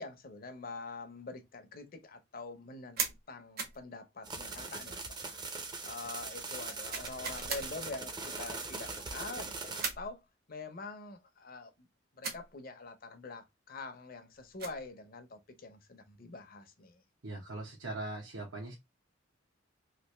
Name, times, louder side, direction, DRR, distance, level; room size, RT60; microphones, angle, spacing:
voice 1, 0.0-5.4 5.8-10.2 10.5-11.9 12.1-17.0, left 3 dB, 45° left, 0.7 m, -45 dB
sound 1, 3.0-3.2 3.6-3.8 6.9-7.7 9.8-10.1 12.2-12.5 14.3-14.8, right 5 dB, 50° right, 0.8 m, -37 dB
sound 2, 4.2-9.8, right 3 dB, 20° right, 0.6 m, -41 dB
voice 2, 17.2-18.7, right 2 dB, 80° right, 1.0 m, -40 dB
3.3 x 2.5 x 3.0 m
head